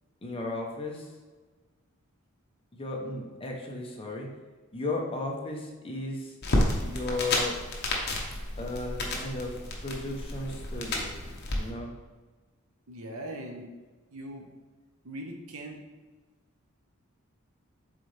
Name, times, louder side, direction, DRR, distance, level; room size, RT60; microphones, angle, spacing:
voice 1, 0.2-1.1 2.7-4.3 4.7-6.3 6.8-7.6 8.6-9.6 9.8-11.2 11.5-11.9, left 2 dB, 25° left, 0 dB, 0.9 m, -35 dB
sound 1, 6.4-11.6, left 1 dB, 50° left, 1.0 m, -31 dB
voice 2, 12.9-13.7 14.1-14.4 15.0-15.8, right 1 dB, 80° right, 2 dB, 1.0 m, -40 dB
7.6 x 4.0 x 3.4 m, 1.3 s
head